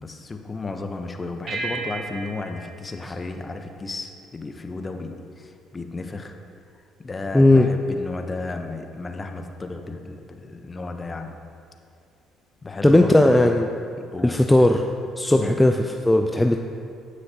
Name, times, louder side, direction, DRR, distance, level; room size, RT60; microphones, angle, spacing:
voice 1, 0.0-6.4 7.0-11.3 12.6-13.5 14.1-14.4 15.3-15.6, left 3 dB, 30° left, 5 dB, 0.9 m, -33 dB
sound 1, 1.5-4.2, right 3 dB, 50° right, 1.3 m, -35 dB
voice 2, 7.3-7.7 12.8-13.7 14.2-14.9 15.2-16.6, left 1 dB, 10° left, 4 dB, 0.5 m, -17 dB
15.5 x 6.4 x 2.9 m, 2.5 s
hypercardioid pair, 55°, 0 cm